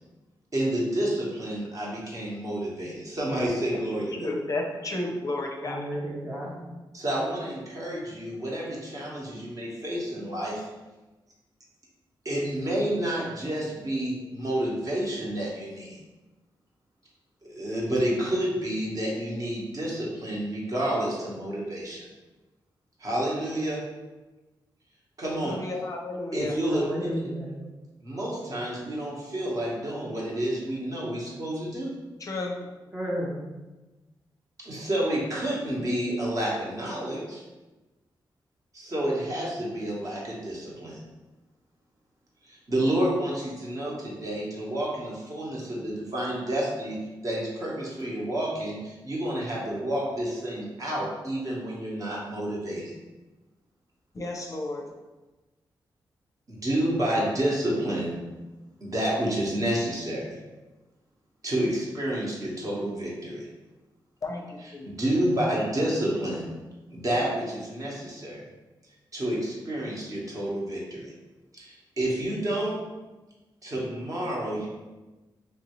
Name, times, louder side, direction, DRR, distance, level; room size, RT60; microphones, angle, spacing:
voice 1, 0.5-4.3 6.9-10.6 12.2-16.0 17.5-22.1 23.0-23.8 25.2-25.6 26.3-26.9 28.0-31.9 34.6-37.4 38.7-41.0 42.4-47.0 47.2-52.9 56.5-58.2 58.8-60.4 61.4-63.5 64.6-66.5 66.9-68.4 69.1-71.1 71.5-72.8 73.6-74.7, right 1 dB, 40° right, -4 dB, 1.0 m, -29 dB
voice 2, 4.2-5.8 25.4-26.5 32.2-32.6 54.2-54.8 64.2-64.9, left 2 dB, 40° left, 1 dB, 0.5 m, -32 dB
voice 3, 5.6-6.8 26.7-27.5 32.9-33.4, equal, 25° right, -5 dB, 0.6 m, -33 dB
3.1 x 2.7 x 3.0 m, 1.1 s
cardioid pair, 90°, 8 cm